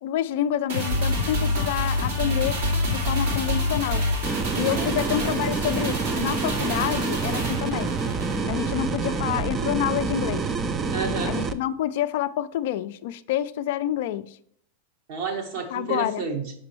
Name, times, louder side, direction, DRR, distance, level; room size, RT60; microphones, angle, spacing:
voice 1, 0.0-2.6 2.9-4.0 4.5-7.9 8.5-10.5 11.2-14.4 15.7-16.2, left 11 dB, 65° left, 0.3 m, -28 dB
sound 1, 0.7-9.3 9.6-9.7, left 1 dB, 75° right, 2.1 m, -28 dB
sound 2, 4.2-11.5, right 4 dB, 25° right, 0.4 m, -27 dB
voice 2, 9.1-9.7 10.9-11.4 15.1-16.5, right 4 dB, 60° right, 1.5 m, -31 dB
6.1 x 5.1 x 3.1 m
hypercardioid pair, 110°, 0 cm